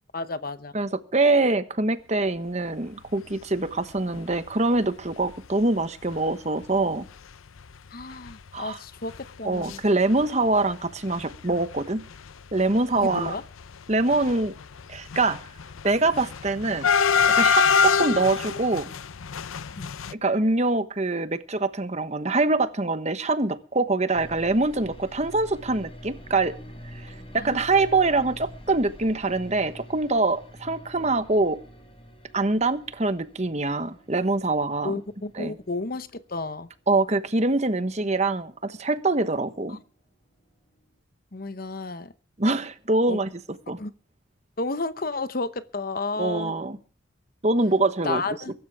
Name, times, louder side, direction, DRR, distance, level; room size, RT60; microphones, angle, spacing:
voice 1, 0.1-0.7 7.9-9.8 13.0-13.4 19.8-19.9 27.4-28.1 34.8-36.7 39.7-39.8 41.3-42.1 43.1-43.2 43.8-43.9 44.6-46.6 48.0-48.5, left 3 dB, 45° left, 13 dB, 0.9 m, -32 dB
voice 2, 0.7-7.1 8.5-8.8 9.4-12.0 12.5-13.4 13.9-14.5 14.9-15.4 15.8-16.9 17.3-18.9 20.1-26.6 26.8-31.6 32.3-34.9 35.4-35.5 36.9-39.8 42.4-43.3 43.7-43.8 46.2-46.8 47.4-48.2, right 2 dB, 35° right, 11 dB, 1.1 m, -24 dB
sound 1, 4.1-4.4 4.8-4.9 5.1-5.3 6.1-6.2 6.6-6.8 7.1-7.2 7.6-9.8 10.0-10.7 11.0-20.1, left 6 dB, 85° left, 0.6 m, -26 dB
sound 2, 24.1-39.9 40.2-41.0, equal, 25° left, 3.7 m, -47 dB
23.0 x 13.0 x 3.5 m, 0.38 s
head